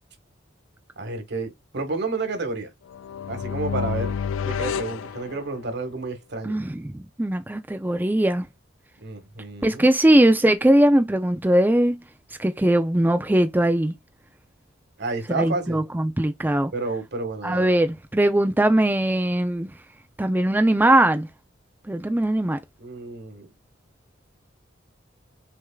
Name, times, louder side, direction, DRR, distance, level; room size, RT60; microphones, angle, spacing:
voice 1, 1.0-2.7 3.3-4.2 4.4-6.6 9.0-9.9 15.0-15.8 16.7-17.7 22.8-23.5, right 3 dB, 60° right, 1.6 m, -30 dB
sound 1, 2.9-5.9, left 7 dB, 75° left, 0.3 m, -30 dB
voice 2, 6.4-8.5 9.6-12.0 12.4-13.9 15.3-16.7 17.4-19.7 20.2-21.3 21.9-22.6, right 1 dB, 10° right, 0.4 m, -20 dB
6.2 x 3.5 x 2.3 m
head